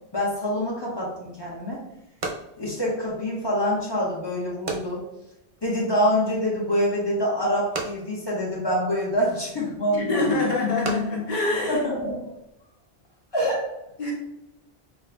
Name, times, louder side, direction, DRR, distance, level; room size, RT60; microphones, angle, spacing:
voice 1, 0.1-1.8 2.6-5.0 5.6-10.5 11.7-12.2 13.3-13.6, equal, 25° left, -6 dB, 1.1 m, -26 dB
sound 1, 1.1-12.5, right 3 dB, 40° right, 0.5 m, -39 dB
voice 2, 9.9-11.8 14.0-14.1, left 3 dB, 50° left, -3 dB, 1.1 m, -25 dB
5.5 x 2.6 x 2.3 m, 0.89 s
omnidirectional pair, 1.1 m